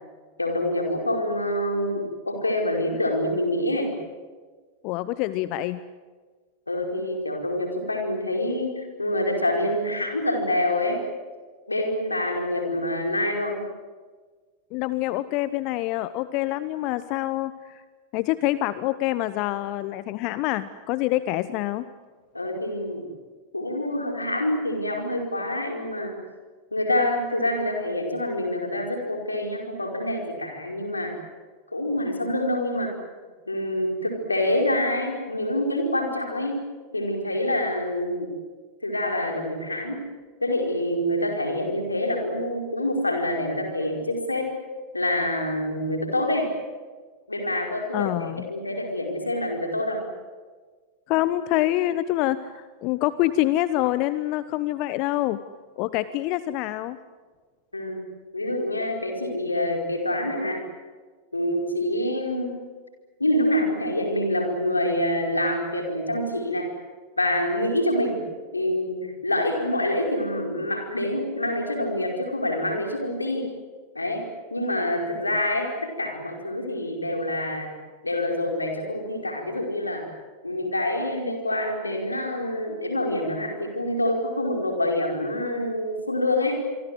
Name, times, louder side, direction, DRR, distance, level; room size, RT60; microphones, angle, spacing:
voice 1, 0.4-3.9 6.7-11.0 11.7-13.6 22.3-23.1 23.5-26.1 26.7-31.1 31.7-32.9 33.5-36.6 36.9-38.3 38.8-40.0 40.4-44.5 44.9-46.5 47.3-50.0 57.7-58.1 58.3-60.6 61.3-62.6 63.2-66.7 67.2-68.2 68.5-73.5 73.9-77.7 78.0-80.0 80.4-86.6, left 1 dB, 80° left, 3 dB, 5.0 m, -26 dB
voice 2, 4.8-5.8 14.7-17.8 18.1-21.9 47.9-48.5 51.1-55.4 55.8-57.0, left 15 dB, 45° left, 15 dB, 0.9 m, -26 dB
27.0 x 24.0 x 7.9 m, 1.5 s
figure-of-eight pair, 90°, 0 cm